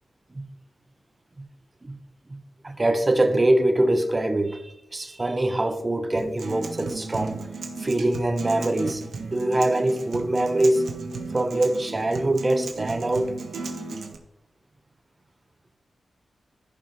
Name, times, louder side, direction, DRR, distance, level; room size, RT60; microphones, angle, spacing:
voice 1, 2.3-7.5 7.8-10.9 11.3-13.4, right 1 dB, 30° right, 0.8 m, -24 dB
Acoustic guitar, 6.2-14.2, right 3 dB, 80° right, 1.0 m, -35 dB
14.5 x 5.7 x 2.9 m
cardioid pair, 60°, 0 cm